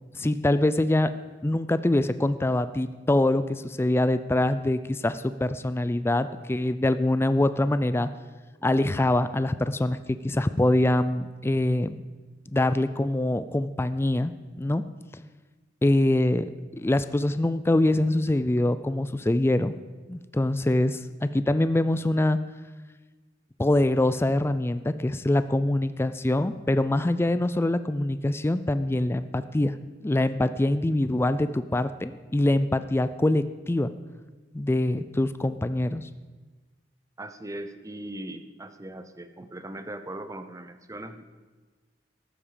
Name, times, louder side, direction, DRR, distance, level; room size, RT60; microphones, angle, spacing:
voice 1, 0.2-1.1 1.4-8.1 8.6-12.0 12.5-14.3 14.6-14.8 15.8-16.5 16.8-19.7 20.1-22.4 23.6-29.7 30.0-33.9 34.5-36.1, left 1 dB, 15° left, 12 dB, 0.4 m, -24 dB
voice 2, 37.2-41.2, right 1 dB, 20° right, 10 dB, 0.7 m, -39 dB
14.5 x 12.0 x 5.0 m, 1.3 s
head